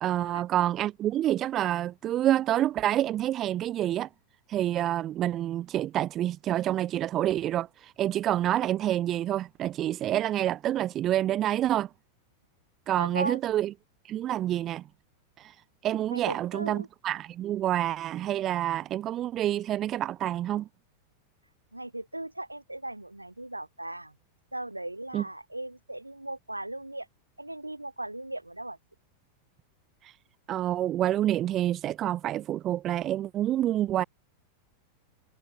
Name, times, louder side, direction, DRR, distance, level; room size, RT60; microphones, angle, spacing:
voice 1, 0.0-4.1 4.5-11.9 12.9-13.7 14.0-14.8 15.4-15.5 15.8-20.7 25.1-25.2 30.0-30.1 30.5-34.0, right 12 dB, 30° right, 0.8 m, -28 dB
voice 2, 13.0-13.4 16.1-16.9 21.7-24.1 24.5-27.1 27.4-28.8, right 1 dB, 85° right, 7.5 m, -37 dB
figure-of-eight pair, 90°, 0 cm